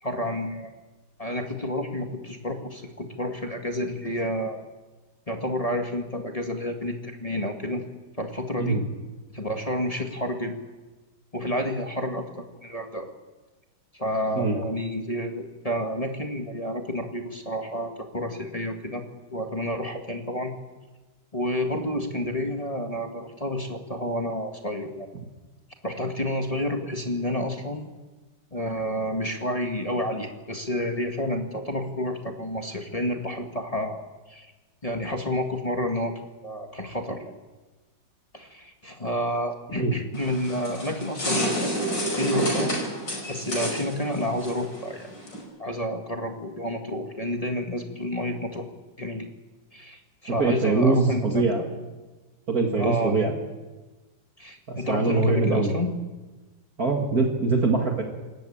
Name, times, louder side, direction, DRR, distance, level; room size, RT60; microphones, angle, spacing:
voice 1, 0.0-0.7 1.2-4.6 5.3-7.8 8.2-8.8 9.3-10.5 11.3-13.1 13.9-19.0 19.3-20.5 21.3-25.1 25.8-27.9 28.5-34.5 34.8-37.3 38.3-41.9 42.1-42.7 43.3-45.1 45.6-48.7 49.0-49.3 49.7-51.6 52.8-53.3 54.4-55.9, left 1 dB, 20° left, 3 dB, 1.7 m, -30 dB
sound 1, 40.1-45.4, right 1 dB, 60° left, 6.3 m, -29 dB
voice 2, 50.3-51.6 52.5-53.3 54.7-55.7 56.8-58.0, right 3 dB, 45° right, 2 dB, 2.5 m, -23 dB
27.5 x 14.5 x 8.7 m, 1.2 s
omnidirectional pair, 2.2 m